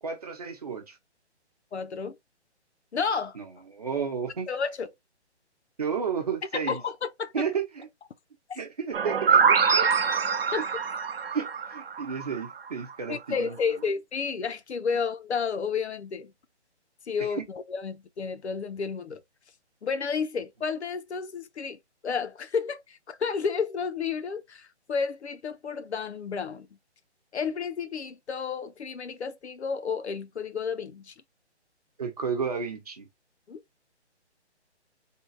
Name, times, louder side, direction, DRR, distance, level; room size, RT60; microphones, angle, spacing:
voice 1, 0.0-1.0 3.3-4.5 5.8-6.8 7.3-7.9 8.5-9.9 11.3-13.6 17.4-17.5 32.0-33.1, right 6 dB, 35° right, 0.9 m, -32 dB
voice 2, 1.7-2.2 2.9-3.4 4.5-4.9 6.5-7.3 8.5-8.6 10.5-10.6 13.1-16.3 17.1-19.2 19.8-26.7 27.3-31.1 33.5-33.6, left 5 dB, 70° left, 0.8 m, -31 dB
sound 1, 8.9-12.7, right 6 dB, 55° right, 0.6 m, -24 dB
3.7 x 2.4 x 3.9 m
hypercardioid pair, 170°, 35 cm